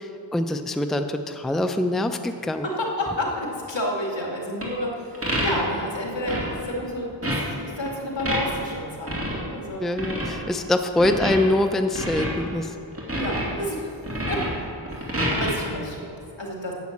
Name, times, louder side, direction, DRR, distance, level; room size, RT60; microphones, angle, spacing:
voice 1, 0.0-2.7 9.8-12.7, left 1 dB, ahead, 7 dB, 0.5 m, -24 dB
voice 2, 2.6-9.8 13.1-13.9 14.3-14.5 14.9-16.7, left 1 dB, 75° left, -1 dB, 2.3 m, -30 dB
sound 1, 4.6-4.7 5.1-5.8 6.3-6.5 6.8-6.9 7.2-7.4 7.9-8.7 9.1-9.4 10.0-10.4 11.0-11.7 11.9-12.5 12.9-13.5 14.0-15.5, equal, 30° right, 2.7 m, -27 dB
10.5 x 7.0 x 8.5 m, 2.6 s
wide cardioid pair, 65°, 45 cm